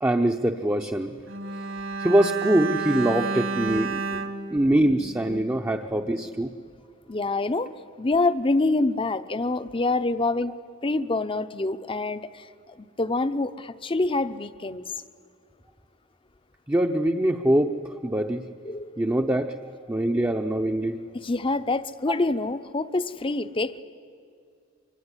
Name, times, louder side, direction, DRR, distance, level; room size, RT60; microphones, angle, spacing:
voice 1, 0.0-1.2 2.0-4.0 4.5-6.5 16.7-18.4 19.0-19.6 19.9-21.0 22.1-22.2, right 1 dB, 10° right, 3 dB, 0.7 m, -23 dB
Bowed string instrument, 1.3-5.7 6.0-6.1, right 4 dB, 70° right, 2.3 m, -31 dB
voice 2, 7.1-7.7 8.0-10.5 10.8-12.5 12.8-14.8 18.6-19.0 21.2-23.8, left 2 dB, 25° left, 12 dB, 0.7 m, -26 dB
24.5 x 23.5 x 9.8 m, 2.3 s
head